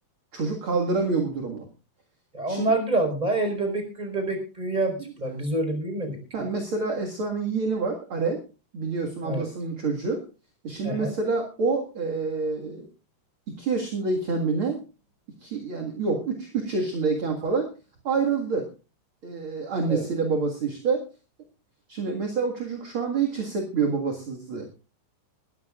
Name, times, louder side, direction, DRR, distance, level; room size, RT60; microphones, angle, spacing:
voice 1, 0.3-1.7 2.5-2.7 6.3-8.4 8.7-10.2 10.6-12.9 13.5-14.8 15.4-17.7 18.0-18.7 19.2-21.1 21.9-24.7, right 4 dB, 45° right, 1 dB, 1.9 m, -27 dB
voice 2, 2.3-6.2 9.2-9.5 10.8-11.2 19.9-20.1, right 2 dB, 10° right, 5 dB, 4.4 m, -27 dB
21.0 x 14.5 x 2.4 m, 0.32 s
omnidirectional pair, 4.7 m